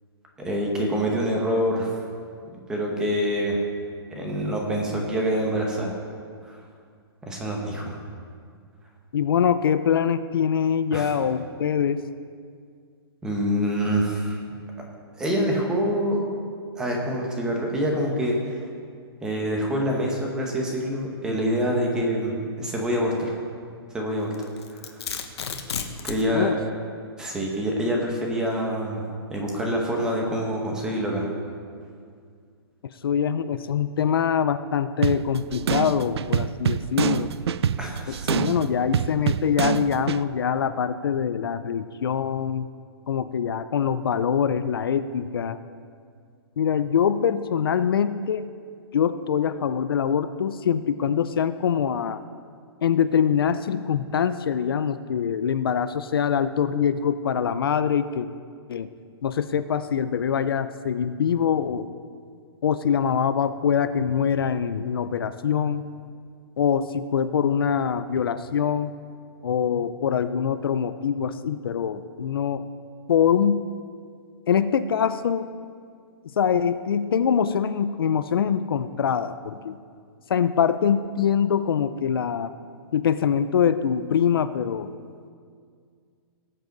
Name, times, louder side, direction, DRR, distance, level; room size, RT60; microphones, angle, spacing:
voice 1, 0.4-2.0 2.7-3.6 4.1-5.9 6.5-6.6 7.2-7.9 10.9-11.1 13.2-14.4 15.2-16.3 16.8-18.6 19.2-23.3 23.9-24.3 24.7-25.1 26.0-26.5 27.2-29.0 29.3-31.3 37.8-38.3, equal, 5° right, 0 dB, 0.9 m, -26 dB
voice 2, 9.1-12.0 26.3-26.6 33.0-37.3 38.1-42.7 43.1-45.6 46.6-48.5 48.9-52.2 52.8-58.3 58.7-58.9 59.2-61.9 62.6-65.8 66.6-68.9 69.4-72.6 73.1-73.6 74.5-75.5 76.4-79.8 80.3-82.5 82.9-84.9, left 7 dB, 60° left, 12 dB, 0.5 m, -24 dB
Domestic sounds home sounds, 24.3-26.3, left 6 dB, 90° left, 1.2 m, -32 dB
sound 1, 35.0-40.2, right 8 dB, 85° right, 0.4 m, -26 dB
18.0 x 7.8 x 3.9 m, 2.1 s
hypercardioid pair, 175°, 13 cm